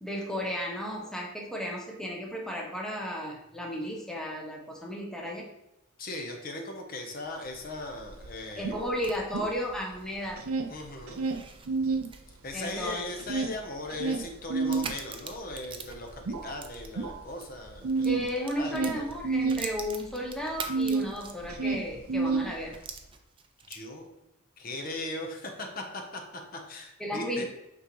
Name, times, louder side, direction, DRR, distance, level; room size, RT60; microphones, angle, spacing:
voice 1, 0.0-5.5 8.6-10.4 12.5-13.0 18.0-22.8 27.0-27.4, equal, 5° left, -2 dB, 0.8 m, -34 dB
voice 2, 6.0-8.7 10.7-11.2 12.4-18.2 18.6-19.2 23.7-24.1 24.6-26.2 26.5-27.4, left 2 dB, 45° left, 3 dB, 0.9 m, -38 dB
sound 1, 7.6-7.7 7.9-9.9 10.2-12.1 12.5-21.1 21.4-22.9, right 4 dB, 90° right, 0.6 m, -30 dB
sound 2, 8.5-17.5 17.8-21.7 22.1-22.2 22.7-24.1, right 5 dB, 25° right, 0.5 m, -45 dB
8.6 x 3.9 x 3.1 m, 0.92 s
head